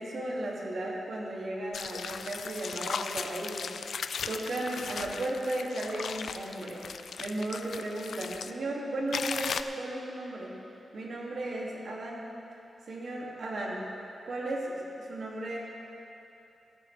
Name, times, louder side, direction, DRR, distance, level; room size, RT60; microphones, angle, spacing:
voice 1, 0.0-3.7 4.3-6.8 7.2-10.5 10.9-12.2 12.9-13.8 14.2-15.6, right 1 dB, 65° right, -3 dB, 2.5 m, -35 dB
sound 1, 1.7-8.5 9.1-9.6, left 6 dB, 75° left, 0.4 m, -37 dB
16.5 x 13.5 x 3.4 m, 2.9 s
wide cardioid pair, 125°, 0 cm